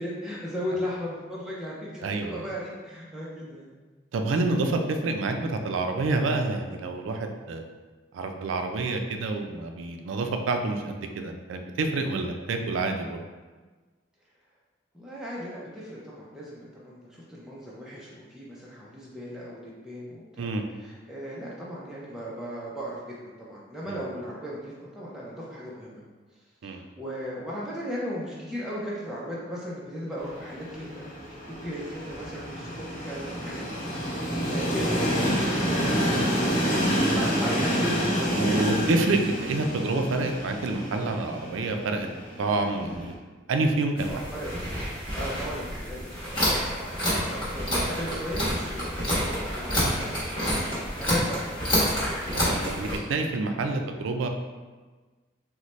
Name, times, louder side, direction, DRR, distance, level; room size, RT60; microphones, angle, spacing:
voice 1, 0.0-3.8 14.9-26.0 26.6-33.7 34.0-38.7 44.0-44.5 45.1-51.7 53.5-53.9, equal, 5° right, -7 dB, 0.4 m, -37 dB
voice 2, 2.0-2.5 4.1-7.6 8.1-13.2 20.4-20.6 23.9-24.0 26.6-26.8 38.3-42.1 42.4-43.1 43.5-44.1 52.3-54.3, right 3 dB, 90° right, 5 dB, 0.4 m, -28 dB
Train, 30.2-43.1, equal, 45° left, 0.7 m, -28 dB
sound 1, 44.0-53.0, equal, 25° left, 1.1 m, -28 dB
4.0 x 2.1 x 3.1 m, 1.3 s
head